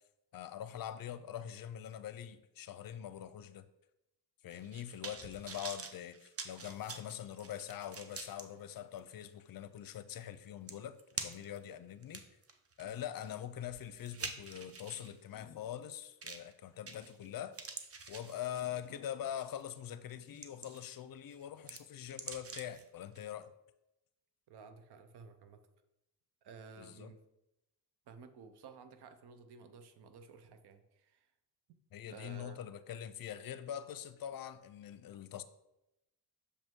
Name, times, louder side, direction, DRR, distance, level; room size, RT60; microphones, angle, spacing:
voice 1, 0.3-3.7 4.4-11.0 11.2-12.2 12.8-17.6 18.1-23.5 26.8-27.1 31.9-35.4, left 10 dB, 60° left, 0.6 m, -43 dB
sound 1, 4.5-8.4 9.0-9.1 10.3-10.4 10.7-11.6 12.0-15.1 16.2-16.5 16.9-17.3 17.5-18.9 19.4-19.6 20.1-21.0 21.3-22.8 23.2-23.3, right 4 dB, 35° right, 0.8 m, -46 dB
voice 2, 24.5-25.6 26.4-27.2 28.1-31.3 32.1-32.7, right 5 dB, 75° right, 0.8 m, -54 dB
6.6 x 5.2 x 3.7 m
cardioid pair, 90°, 39 cm